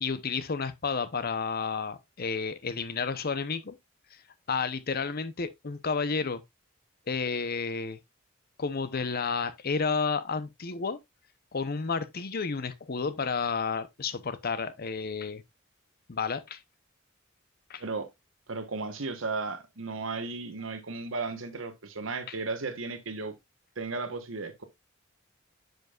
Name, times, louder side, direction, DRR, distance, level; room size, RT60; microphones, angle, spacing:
voice 1, 0.0-3.7 4.5-6.4 7.1-8.0 8.6-11.0 11.5-15.4 16.1-16.6 17.7-17.8 22.3-22.4, left 5 dB, 50° left, 0.7 m, -31 dB
voice 2, 17.8-18.1 18.5-23.3 23.8-24.6, right 3 dB, 85° right, 1.2 m, -35 dB
9.3 x 5.2 x 2.4 m
head